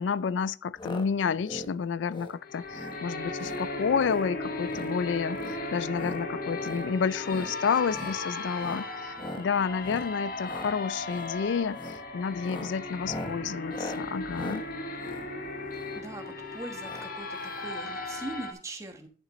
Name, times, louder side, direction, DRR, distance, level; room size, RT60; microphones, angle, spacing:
voice 1, 0.0-14.6, left 6 dB, 80° left, 0.4 m, -30 dB
sound 1, 0.8-1.1 1.3-1.7 2.1-2.4 2.7-3.0 3.4-3.6 4.0-4.3 4.6-4.9 5.3-6.2 6.6-6.9 7.2-7.5 7.9-8.2 8.6-8.9 9.2-9.5 9.8-10.1 10.4-10.7 11.1-11.3 11.7-12.0 12.4-16.0 16.8-17.1 17.4-17.5 17.6-17.7, left 1 dB, 25° left, 1.1 m, -41 dB
sound 2, 2.4-18.5, left 2 dB, 50° left, 1.3 m, -36 dB
voice 2, 15.7-19.1, right 1 dB, 15° right, 1.2 m, -41 dB
11.0 x 6.6 x 3.1 m
head